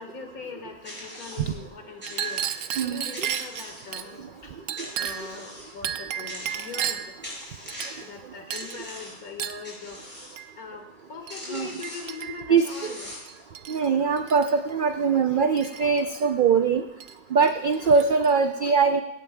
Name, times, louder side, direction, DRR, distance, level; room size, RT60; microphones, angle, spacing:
voice 1, 0.0-4.5 5.0-7.2 8.0-10.0 10.6-13.2 17.8-18.0, left 5 dB, 75° left, 4 dB, 2.0 m, -41 dB
sound 1, 0.8-1.6 2.0-2.7 3.1-4.2 4.8-5.8 6.3-6.9 7.2-8.1 8.5-9.3 9.6-10.4 11.0-11.1 11.3-12.2 12.6-13.4, left 1 dB, 5° left, 5.1 m, -41 dB
Chink clink, 2.0-4.1 4.7-5.4 5.8-7.2 7.7-8.2 8.5-8.8 9.4-9.7 10.4-10.5 11.3-11.4 11.8-12.5 13.3-13.9 14.2-14.5 15.6-16.2 17.0-17.1 17.4-18.3, right 9 dB, 65° right, 1.0 m, -33 dB
voice 2, 13.7-16.8 17.3-19.0, right 5 dB, 85° right, 7 dB, 0.4 m, -22 dB
17.0 x 16.0 x 2.2 m, 0.87 s
omnidirectional pair, 1.6 m